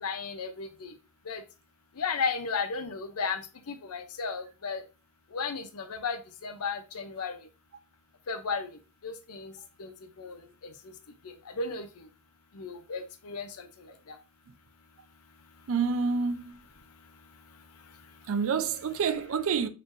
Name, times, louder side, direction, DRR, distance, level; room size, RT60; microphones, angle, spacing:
voice 1, 0.0-0.9 1.3-1.4 2.0-3.4 3.7-4.8 5.3-6.2 6.4-7.4 8.3-8.7 9.0-9.5 9.8-9.9 10.2-10.4 11.6-11.9 12.6-13.5, left 5 dB, 80° left, 0.6 m, -33 dB
voice 2, 15.7-16.6 18.3-19.7, right 5 dB, 65° right, 0.4 m, -28 dB
4.1 x 3.2 x 2.6 m
head